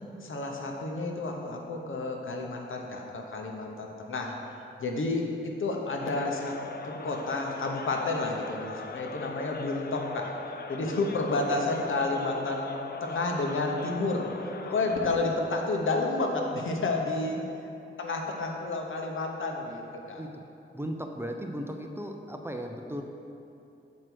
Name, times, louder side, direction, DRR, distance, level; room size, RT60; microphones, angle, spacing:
voice 1, 0.2-4.3 4.8-6.6 6.8-10.3 10.7-12.7 13.0-14.3 14.6-17.4 18.0-20.2, left 2 dB, 70° left, 1 dB, 1.0 m, -30 dB
sound 1, 6.0-15.1, left 4 dB, 50° left, 0.5 m, -41 dB
voice 2, 20.7-23.0, equal, 10° right, 3 dB, 0.5 m, -36 dB
7.5 x 4.7 x 6.2 m, 2.8 s
wide cardioid pair, 95°, 21 cm